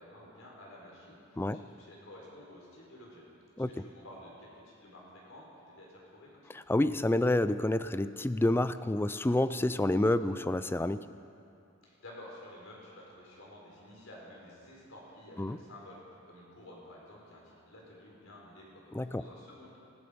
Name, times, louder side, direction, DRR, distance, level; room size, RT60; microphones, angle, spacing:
voice 1, 0.0-3.2 3.5-6.5 11.8-19.8, left 1 dB, 85° left, -3 dB, 4.6 m, -52 dB
voice 2, 6.5-11.0 15.4-15.6 18.9-19.2, left 1 dB, 10° left, 13 dB, 0.3 m, -28 dB
17.5 x 15.0 x 5.2 m, 2.6 s
head